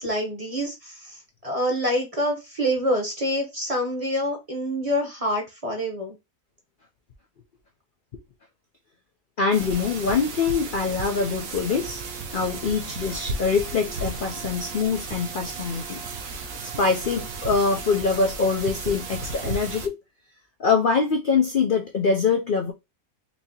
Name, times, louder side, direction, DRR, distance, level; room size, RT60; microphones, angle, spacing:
voice 1, 0.0-6.2, equal, 30° right, 0.9 m, -26 dB
voice 2, 9.4-12.0 12.3-16.0 16.6-20.0 20.6-22.7, left 5 dB, 65° left, 0.5 m, -24 dB
sound 1, 9.5-19.9, right 3 dB, 65° right, 1.0 m, -34 dB
4.4 x 2.8 x 2.8 m
omnidirectional pair, 1.6 m